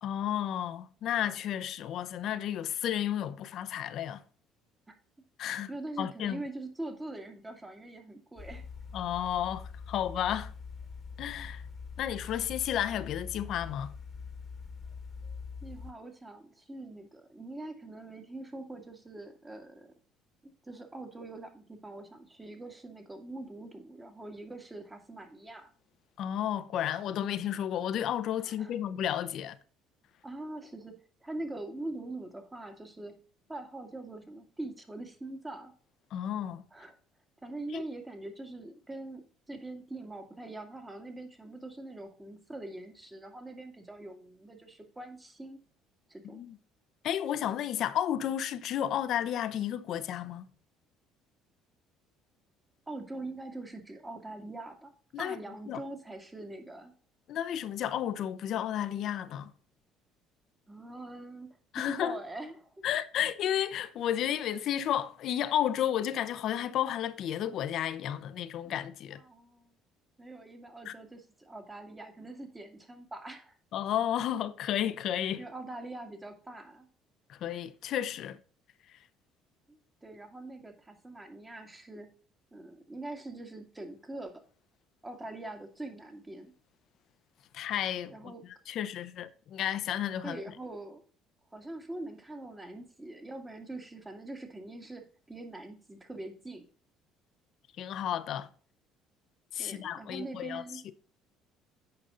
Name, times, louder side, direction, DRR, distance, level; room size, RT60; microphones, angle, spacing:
voice 1, 0.0-4.2 5.4-5.7 6.0-6.4 8.9-10.5 11.2-11.6 12.0-14.0 26.2-29.6 36.1-36.6 37.7-37.8 46.3-46.6 47.0-50.5 55.1-55.4 55.7-55.8 57.3-59.5 61.7-62.2 62.8-69.2 70.8-70.9 73.7-75.4 77.3-78.4 78.9-79.0 87.5-90.4 97.8-98.5 99.5-100.6, left 10 dB, 65° left, 0.7 m, -32 dB
voice 2, 5.7-8.6 15.6-19.9 20.4-25.7 28.4-28.7 30.2-30.9 31.2-33.2 33.5-35.7 36.7-36.9 37.4-45.6 46.1-46.4 52.9-54.9 55.2-56.9 60.7-61.5 61.8-62.9 68.6-68.7 69.1-69.7 70.2-73.6 75.4-76.9 79.7-82.1 82.5-84.4 85.0-86.5 88.1-88.4 90.2-91.0 91.5-96.7 99.6-100.8, right 2 dB, 15° right, 1.9 m, -43 dB
sound 1, 8.4-15.9, left 5 dB, 35° left, 1.3 m, -44 dB
8.8 x 5.3 x 3.8 m
supercardioid pair, 75°, 0 cm